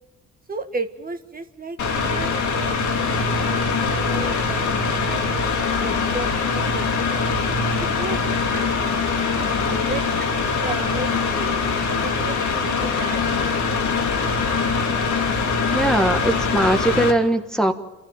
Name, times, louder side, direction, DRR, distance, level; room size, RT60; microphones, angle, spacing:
voice 1, 0.5-7.3 7.8-9.0 9.4-11.6 12.0-13.2 13.5-13.7, right 3 dB, 30° right, 7 dB, 1.5 m, -34 dB
Mechanical fan, 1.8-17.1, left 4 dB, 75° left, 3.4 m, -23 dB
voice 2, 15.7-17.7, right 1 dB, ahead, 4 dB, 1.5 m, -20 dB
28.0 x 13.5 x 9.0 m, 1.1 s
cardioid pair, 90°, 30 cm